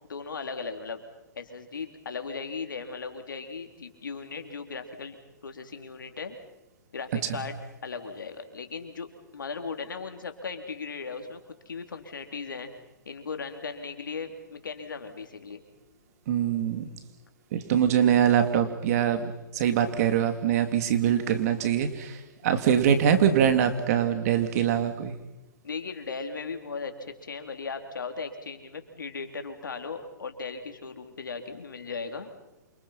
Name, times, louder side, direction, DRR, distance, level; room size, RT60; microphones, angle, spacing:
voice 1, 0.1-1.0 1.4-5.2 5.4-6.4 6.9-11.4 11.7-12.7 13.1-15.6 25.6-32.3, left 5 dB, 85° left, 5 dB, 3.8 m, -37 dB
voice 2, 16.3-16.9 17.5-25.1, right 9 dB, 50° right, 8 dB, 3.1 m, -23 dB
28.0 x 26.0 x 5.9 m, 0.96 s
hypercardioid pair, 130°, 10 cm